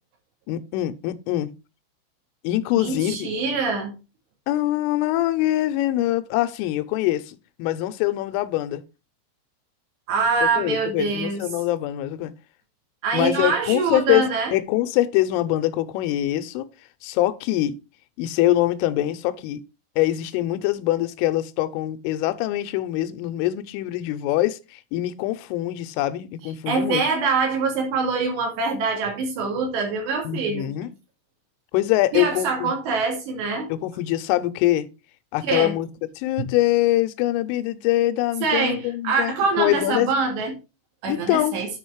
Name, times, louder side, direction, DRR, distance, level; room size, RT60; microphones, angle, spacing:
voice 1, 0.5-1.5 2.4-3.3 4.5-8.8 10.4-12.3 13.1-14.3 14.5-16.7 17.0-17.8 18.2-19.6 20.0-27.0 30.2-30.9 31.7-32.7 33.7-34.9 35.3-35.9 36.2-40.1 41.1-41.6, left 15 dB, 85° left, 3.2 m, -23 dB
voice 2, 2.8-3.9 10.1-11.4 13.0-14.6 26.7-30.7 32.1-33.7 35.5-35.7 36.4-36.5 38.4-40.5 41.0-41.7, right 4 dB, 65° right, 4.4 m, -24 dB
9.5 x 5.0 x 4.6 m
omnidirectional pair, 5.6 m